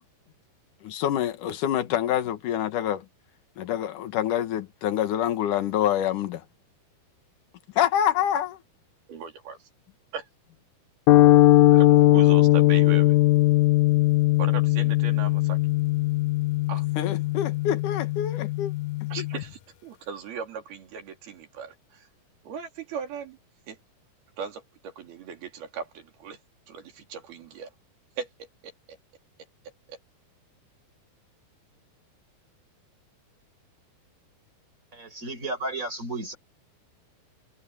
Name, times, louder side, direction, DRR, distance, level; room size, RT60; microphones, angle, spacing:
voice 1, 0.8-3.0 3.6-6.4 7.8-8.6 17.0-18.7, left 10 dB, 60° left, 2.8 m, -26 dB
voice 2, 9.1-9.7 10.1-10.3 11.7-13.2 14.4-15.6 16.7-16.9 19.1-22.1 22.4-23.4 23.7-23.8 24.4-26.4 26.7-27.7 28.2-28.7 29.9-30.0, right 6 dB, 75° right, 5.1 m, -38 dB
sound 1, 11.1-19.4, left 16 dB, 85° left, 1.6 m, -20 dB
voice 3, 34.9-36.4, right 2 dB, 20° right, 5.1 m, -33 dB
omnidirectional pair, 4.5 m